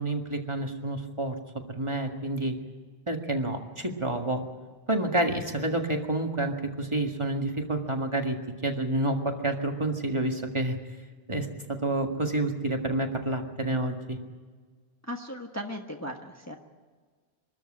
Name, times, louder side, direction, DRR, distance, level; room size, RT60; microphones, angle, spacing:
voice 1, 0.0-1.4 1.7-2.6 3.1-4.4 4.9-8.4 8.6-10.8 11.3-14.2, right 2 dB, 30° right, 2 dB, 1.9 m, -29 dB
voice 2, 15.0-16.6, equal, 15° left, 2 dB, 1.3 m, -37 dB
24.0 x 13.5 x 8.7 m, 1.5 s
omnidirectional pair, 1.1 m